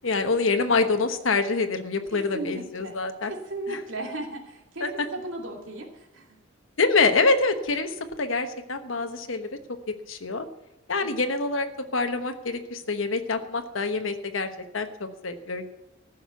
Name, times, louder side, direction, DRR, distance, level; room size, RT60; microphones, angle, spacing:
voice 1, 0.0-3.3 3.7-3.8 4.8-4.9 6.8-9.5 10.1-10.4 10.9-14.5 14.7-15.8, left 3 dB, 85° left, 7 dB, 1.1 m, -26 dB
voice 2, 2.1-6.4 11.0-11.3, right 2 dB, 75° right, 2 dB, 2.6 m, -36 dB
15.0 x 6.5 x 8.2 m, 0.92 s
head